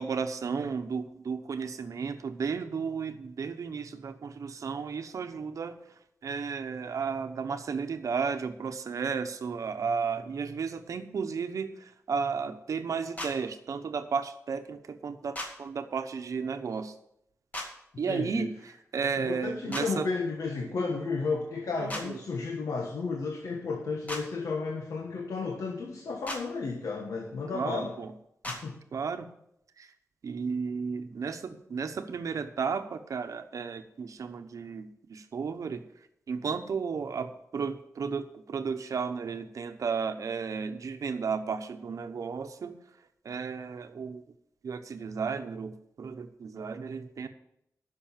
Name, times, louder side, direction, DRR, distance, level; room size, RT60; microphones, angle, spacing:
voice 1, 0.0-5.8 6.2-16.9 18.0-20.1 21.8-22.2 27.5-28.1 28.9-29.3 29.8-29.9 30.2-35.8 36.3-42.7 43.2-44.2 44.6-47.3, right 5 dB, 80° right, 8 dB, 0.9 m, -33 dB
sound 1, 13.2-13.3 15.3-15.5 17.5-17.7 19.7-19.9 21.9-22.0 24.1-24.2 26.3-26.4 28.4-28.6, left 1 dB, 30° left, 2.1 m, -35 dB
voice 2, 18.1-18.5 19.2-28.0 28.5-28.8, left 4 dB, 85° left, 1 dB, 1.3 m, -33 dB
10.5 x 6.3 x 7.3 m, 0.77 s
wide cardioid pair, 125°, 6 cm